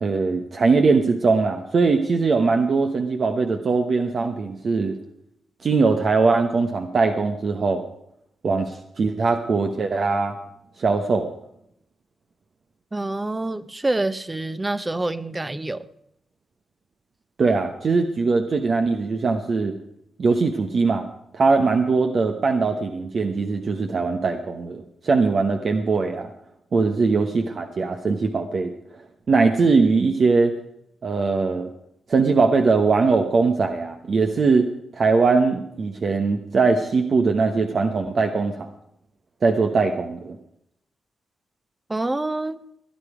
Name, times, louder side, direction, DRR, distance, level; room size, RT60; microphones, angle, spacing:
voice 1, 0.0-4.9 5.6-7.8 8.4-10.4 10.8-11.3 17.4-19.7 20.2-21.1 21.3-26.3 26.7-29.0 29.3-30.5 31.0-31.7 32.1-38.7 39.4-40.4, right 4 dB, 55° right, 1.0 m, -21 dB
voice 2, 12.9-15.9 41.9-42.6, right 2 dB, 20° right, 0.8 m, -26 dB
17.0 x 10.0 x 5.0 m
cardioid pair, 65°, 0 cm